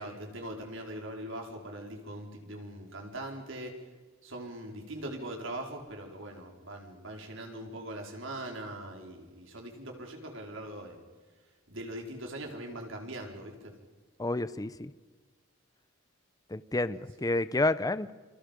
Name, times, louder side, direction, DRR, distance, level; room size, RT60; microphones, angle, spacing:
voice 1, 0.0-3.8 4.2-11.0 11.7-13.7, right 1 dB, 65° right, 2 dB, 4.5 m, -41 dB
voice 2, 14.2-14.9 16.5-18.1, left 2 dB, 20° left, 15 dB, 0.7 m, -29 dB
28.0 x 26.0 x 5.3 m, 1.4 s
head